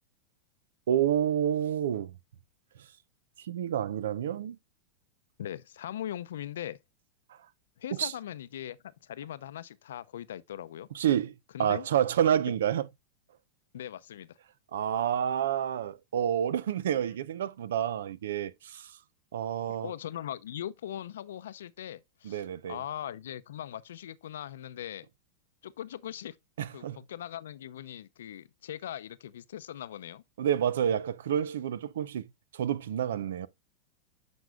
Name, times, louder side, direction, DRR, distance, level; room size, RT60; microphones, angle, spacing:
voice 1, 0.9-2.1 3.5-4.6 7.9-8.1 10.9-11.3 11.6-12.8 14.7-18.8 19.3-19.9 22.2-22.8 26.6-27.0 30.4-32.3 32.5-33.5, right 9 dB, 85° right, 0.6 m, -29 dB
voice 2, 5.4-6.8 7.8-10.9 11.5-11.9 13.7-14.3 19.7-25.1 25.6-26.4 26.7-30.2, left 11 dB, 85° left, 0.6 m, -40 dB
9.4 x 5.3 x 2.3 m
supercardioid pair, 130°, 0 cm